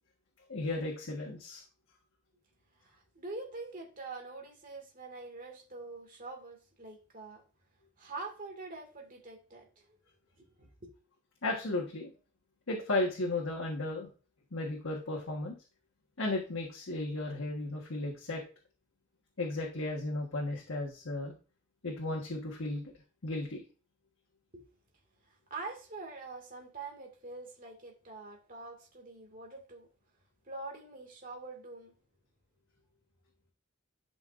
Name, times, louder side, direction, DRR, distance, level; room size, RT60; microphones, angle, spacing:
voice 1, 0.5-1.6 11.4-12.1 12.7-14.1 14.5-15.6 16.2-18.4 19.4-21.3 21.8-22.9 23.2-23.6, left 2 dB, 90° left, 1.3 m, -34 dB
voice 2, 2.8-7.4 8.0-10.0 10.4-10.9 24.5-24.7 25.5-29.9 30.5-31.9, right 3 dB, 45° right, 2.0 m, -45 dB
11.5 x 5.3 x 2.5 m
head